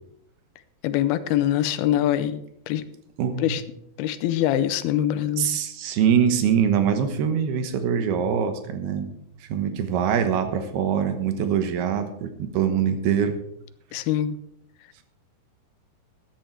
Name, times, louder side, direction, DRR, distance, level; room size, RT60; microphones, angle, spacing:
voice 1, 0.8-2.4 2.7-2.8 3.4-3.6 4.0-5.6 13.9-14.4, left 12 dB, 90° left, 13 dB, 2.6 m, -23 dB
voice 2, 3.2-3.6 5.4-9.1 9.5-13.4, right 8 dB, 85° right, 8 dB, 3.2 m, -23 dB
13.5 x 10.5 x 4.6 m, 0.74 s
omnidirectional pair, 4.5 m